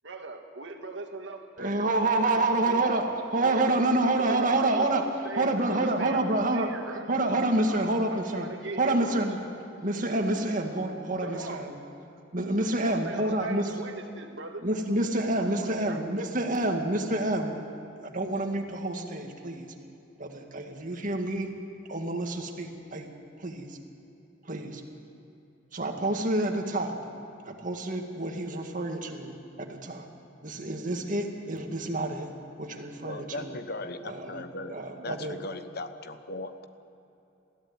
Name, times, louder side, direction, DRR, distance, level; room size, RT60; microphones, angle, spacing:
voice 1, 0.0-1.9 2.2-3.9 4.2-7.1 7.7-9.3 11.2-11.8 12.7-14.6 15.4-16.0, right 3 dB, 70° right, 4 dB, 1.8 m, -40 dB
voice 2, 1.6-3.0 3.3-5.0 5.4-6.7 7.1-8.5 8.8-9.4 9.8-11.7 12.3-13.7 14.6-17.5 18.0-19.7 20.2-21.5 21.9-23.1 23.4-23.8 24.5-24.8 25.7-26.9 27.4-30.1 30.4-32.3 32.6-33.5 34.0-34.4 34.7-35.4, right 2 dB, 45° right, 3 dB, 2.0 m, -28 dB
voice 3, 33.0-34.8 35.0-36.7, left 2 dB, 55° left, 9 dB, 1.0 m, -38 dB
21.0 x 15.0 x 9.5 m, 2.8 s
head